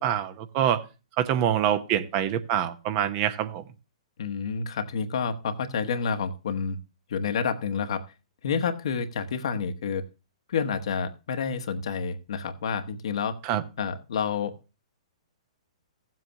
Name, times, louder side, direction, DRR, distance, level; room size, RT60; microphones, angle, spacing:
voice 1, 0.0-0.8 1.2-3.6 13.4-13.6, right 10 dB, 40° right, 1.0 m, -25 dB
voice 2, 4.2-6.8 7.1-8.0 8.4-10.0 10.5-13.4 13.8-14.6, left 6 dB, 60° left, 1.2 m, -29 dB
16.5 x 7.6 x 2.9 m
figure-of-eight pair, 115°, 3 cm